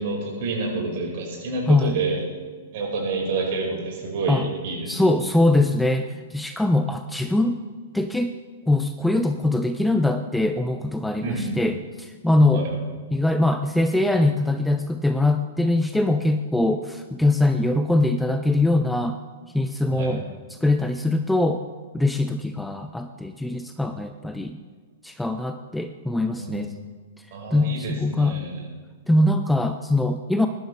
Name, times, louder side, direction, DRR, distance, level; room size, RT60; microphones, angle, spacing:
voice 1, 0.0-2.2 2.7-4.9 11.2-11.6 12.5-12.7 19.9-20.1 26.4-26.8 27.3-28.6, right 3 dB, 45° right, -1 dB, 5.1 m, -28 dB
voice 2, 1.7-2.0 4.3-4.5 4.9-7.6 7.9-8.4 8.7-12.7 13.1-19.2 19.5-21.6 21.9-24.6 25.0-26.7 27.5-28.4 29.1-30.5, left 2 dB, 5° left, 8 dB, 0.5 m, -22 dB
21.5 x 12.0 x 3.4 m, 1.5 s
figure-of-eight pair, 105°, 0 cm